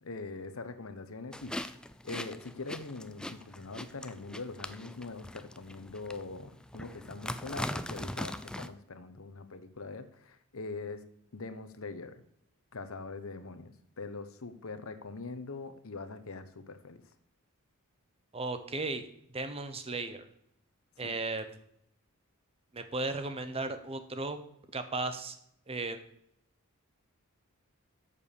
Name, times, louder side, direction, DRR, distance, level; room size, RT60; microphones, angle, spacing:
voice 1, 0.0-1.8 2.0-11.0 11.3-12.2 12.7-17.0 21.0-21.1, left 3 dB, 65° left, 10 dB, 1.0 m, -42 dB
sound 1, 1.3-8.7, left 1 dB, 5° left, 0.4 m, -41 dB
voice 2, 18.3-19.0 19.3-20.3 21.0-21.6 22.7-24.4 24.7-25.4 25.7-26.0, right 3 dB, 25° right, 9 dB, 0.9 m, -35 dB
8.4 x 6.9 x 6.9 m, 0.70 s
head